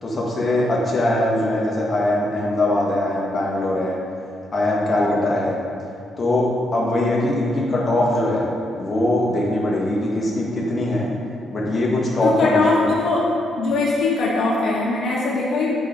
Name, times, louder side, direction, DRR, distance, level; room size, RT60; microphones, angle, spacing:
voice 1, 0.0-4.0 4.5-5.6 6.2-11.1 11.5-12.9, left 1 dB, 30° left, -4 dB, 1.7 m, -21 dB
voice 2, 12.2-13.2 13.6-15.8, left 3 dB, 70° left, -4 dB, 1.2 m, -21 dB
8.2 x 5.1 x 4.6 m, 2.4 s
cardioid pair, 90°, 0 cm